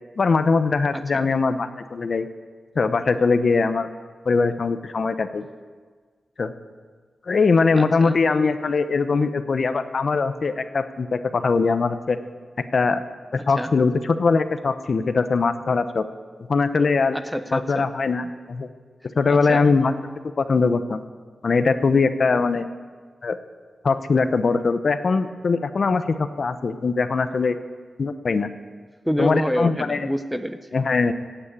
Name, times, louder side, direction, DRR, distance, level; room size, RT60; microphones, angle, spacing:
voice 1, 0.2-2.3 2.8-3.9 4.3-5.5 6.4-6.5 7.3-12.2 12.7-13.0 13.3-16.0 16.5-17.2 17.5-18.7 19.2-19.9 20.4-21.0 21.4-22.6 23.2-23.4 23.8-27.6 28.0-28.5 29.2-30.1 30.7-31.1, left 4 dB, 50° left, 10 dB, 0.8 m, -21 dB
voice 2, 0.9-1.3 7.7-8.2 13.4-13.7 17.1-17.9 19.3-19.7 29.0-30.8, equal, ahead, 10 dB, 0.6 m, -27 dB
16.0 x 9.1 x 8.4 m, 1.5 s
wide cardioid pair, 145°, 0 cm